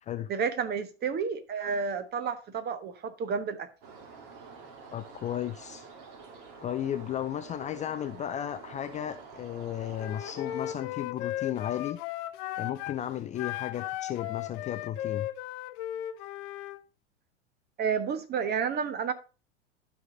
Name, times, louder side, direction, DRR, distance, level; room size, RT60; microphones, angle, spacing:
voice 1, 0.3-3.7 17.8-19.1, right 6 dB, 30° right, 1.3 m, -30 dB
sound 1, 3.8-10.8, right 4 dB, 50° right, 2.4 m, -48 dB
voice 2, 4.9-5.8 6.6-12.0 12.6-15.3, left 11 dB, 20° left, 0.5 m, -34 dB
Wind instrument woodwind instrument, 10.0-13.0 13.4-16.8, left 13 dB, 45° left, 0.8 m, -36 dB
12.0 x 5.5 x 4.0 m
figure-of-eight pair, 90°, 35 cm